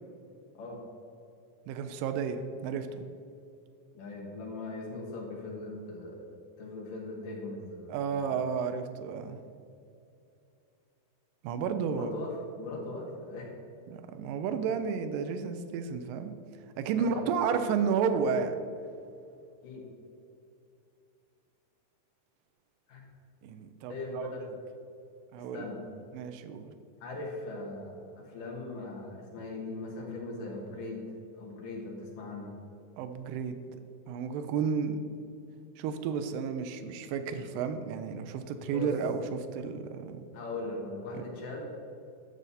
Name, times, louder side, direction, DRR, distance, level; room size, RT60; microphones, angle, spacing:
voice 1, 1.7-3.1 7.9-9.4 11.4-12.1 13.9-16.3 16.8-18.6 23.4-24.4 25.3-25.7 26.1-26.7 33.0-33.8 34.1-35.1 35.8-40.2 41.1-41.3, right 6 dB, 85° right, 8 dB, 2.0 m, -32 dB
voice 2, 3.9-6.3 6.6-8.3 11.8-13.5 16.9-17.3 19.6-19.8 22.9-23.0 23.9-24.3 25.5-25.8 27.0-31.0 31.4-32.5 38.7-38.9 40.3-41.6, left 2 dB, 60° left, -2 dB, 3.0 m, -40 dB
11.0 x 6.6 x 4.2 m, 2.6 s
omnidirectional pair, 4.7 m